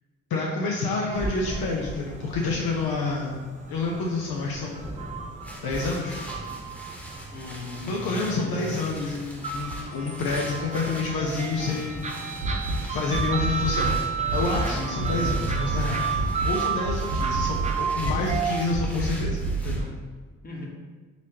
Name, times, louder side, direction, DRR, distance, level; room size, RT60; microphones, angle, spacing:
voice 1, 0.3-3.4 3.7-4.9 5.6-6.2 7.9-12.1 12.9-14.0 14.3-19.9, left 3 dB, 60° left, -2 dB, 0.7 m, -28 dB
sound 1, 1.1-19.8, right 1 dB, 5° left, 1.2 m, -39 dB
sound 2, 1.1-18.7, right 6 dB, 15° right, 0.4 m, -33 dB
voice 2, 7.3-8.7 14.7-15.4 20.4-20.7, left 2 dB, 20° left, -3 dB, 1.1 m, -37 dB
sound 3, 12.4-12.8 13.1-14.0 14.3-14.7 15.0-15.9 16.2-16.6 16.9-17.7 18.0-18.4 18.7-19.8, right 2 dB, 75° right, 0.7 m, -28 dB
4.0 x 3.1 x 2.8 m, 1.5 s
hypercardioid pair, 55°, 42 cm